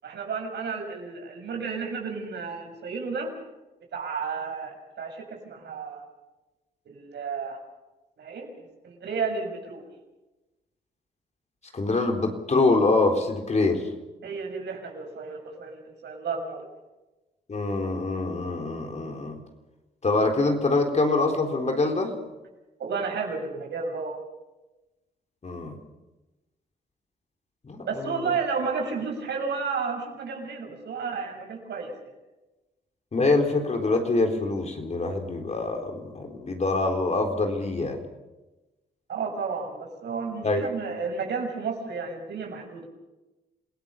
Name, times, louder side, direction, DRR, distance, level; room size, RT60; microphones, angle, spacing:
voice 1, 0.0-3.3 3.9-6.0 6.8-7.6 8.2-9.8 14.2-16.6 22.8-24.2 27.9-31.9 39.1-42.9, right 5 dB, 70° right, 2 dB, 6.8 m, -32 dB
voice 2, 11.7-13.9 17.5-19.4 20.0-22.1 25.4-25.8 27.6-28.3 33.1-38.0 40.4-40.7, left 3 dB, 40° left, 4 dB, 4.0 m, -25 dB
27.5 x 17.5 x 7.0 m, 1.1 s
cardioid pair, 85°, 18 cm